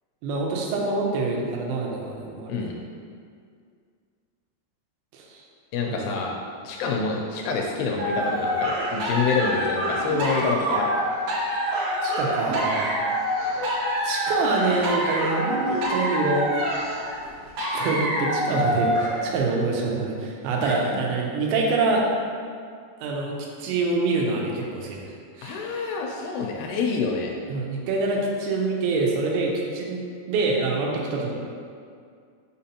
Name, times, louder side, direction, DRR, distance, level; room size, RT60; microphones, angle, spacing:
voice 1, 0.2-2.7 5.1-5.2 5.9-6.2 12.0-13.0 14.0-16.5 17.7-22.0 23.0-25.1 25.4-25.6 27.5-30.0 30.3-31.3, right 3 dB, 85° right, -1 dB, 3.0 m, -26 dB
voice 2, 5.7-6.3 6.6-10.9 20.6-20.8 25.4-27.3, left 4 dB, 80° left, 0 dB, 2.4 m, -27 dB
sound 1, 8.0-19.4, equal, 70° right, 2.4 m, -26 dB
6.6 x 5.2 x 2.8 m, 2.2 s
omnidirectional pair, 4.9 m